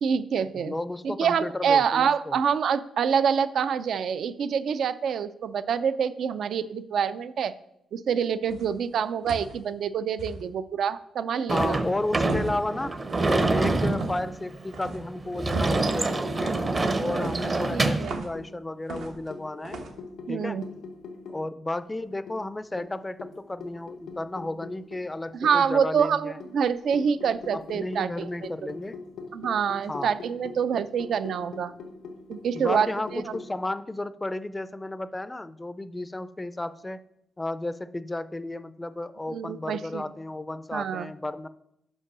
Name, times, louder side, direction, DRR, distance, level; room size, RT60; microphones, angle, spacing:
voice 1, 0.0-0.8 1.0-7.5 7.9-11.7 17.7-18.2 20.3-20.6 25.3-28.3 29.3-31.7 32.3-33.3 39.3-40.1 40.7-41.1, right 7 dB, 70° right, 14 dB, 0.4 m, -26 dB
voice 2, 0.5-2.4 11.5-13.0 13.3-16.7 17.0-19.8 20.3-20.6 21.3-26.4 27.5-29.0 29.9-30.1 32.5-37.0 37.4-41.5, left 2 dB, 15° left, 14 dB, 0.4 m, -33 dB
sound 1, 8.5-8.8 9.3-9.6 10.2-10.4 12.3-12.6 13.1-13.4 13.9-14.3 14.7-15.0 15.5-15.8 16.4-16.7 17.2-18.4 18.9-19.3 19.6-19.9, right 3 dB, 85° right, 1.0 m, -38 dB
Sliding door / Slam, 11.5-18.2, right 2 dB, 35° right, 0.7 m, -26 dB
sound 2, 15.2-17.9 18.3-21.5 21.8-21.9 22.3-25.8 26.4-33.5, left 4 dB, 85° left, 0.7 m, -43 dB
5.4 x 5.3 x 6.0 m, 0.79 s
cardioid pair, 85°, 0 cm